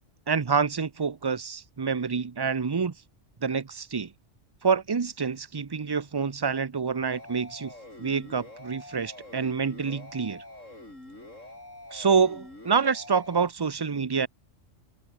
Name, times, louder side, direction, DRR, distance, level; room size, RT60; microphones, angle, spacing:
voice 1, 0.3-2.9 3.4-4.1 4.6-7.7 8.0-10.4 11.9-14.3, right 5 dB, 30° right, 0.4 m, -27 dB
sound 1, 7.1-13.4, left 1 dB, 80° left, 8.4 m, -46 dB
omnidirectional pair, 1.3 m